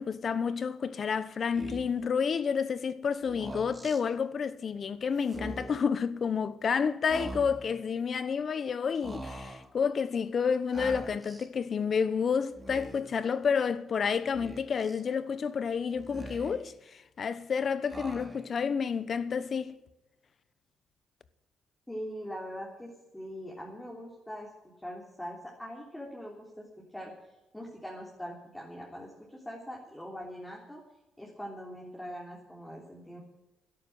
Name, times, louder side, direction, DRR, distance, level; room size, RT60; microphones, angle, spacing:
voice 1, 0.0-19.7, left 6 dB, 50° left, 1.0 m, -30 dB
Speech, 1.5-2.0 3.2-4.0 5.2-5.9 7.1-7.8 9.0-9.7 10.7-11.5 12.5-13.2 14.3-15.0 15.9-16.7 17.9-18.6, right 1 dB, 20° right, 2.5 m, -43 dB
voice 2, 21.9-30.8 31.2-33.2, equal, 10° left, 3.5 m, -42 dB
13.0 x 11.0 x 7.8 m
cardioid pair, 90°, 0 cm